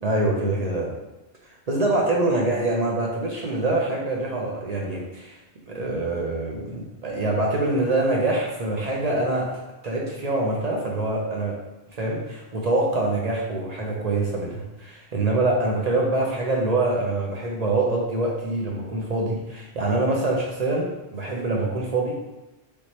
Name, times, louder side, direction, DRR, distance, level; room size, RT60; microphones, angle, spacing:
voice 1, 0.0-0.9 1.7-5.4 5.7-9.6 9.8-11.6 11.9-22.2, right 2 dB, 50° right, -2 dB, 0.5 m, -25 dB
3.4 x 2.8 x 3.0 m, 1.0 s
omnidirectional pair, 1.2 m